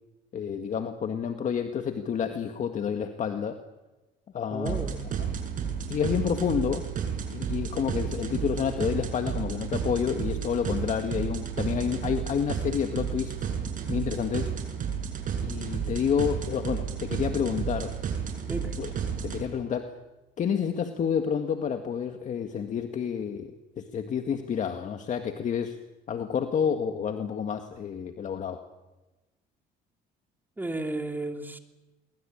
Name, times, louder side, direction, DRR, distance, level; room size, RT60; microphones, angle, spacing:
voice 1, 0.3-3.6 4.3-5.3 5.9-6.9 7.3-13.3 13.9-14.5 15.4-17.9 18.8-18.9 19.2-19.9 20.4-25.8 26.1-28.6, left 7 dB, 45° left, 6 dB, 1.9 m, -29 dB
voice 2, 4.5-5.0 18.5-18.7 30.6-31.6, right 2 dB, 10° right, 5 dB, 3.0 m, -33 dB
sound 1, 4.7-19.4, right 7 dB, 50° right, 6.2 m, -32 dB
23.5 x 22.0 x 8.7 m, 1.1 s
cardioid pair, 110°, 17 cm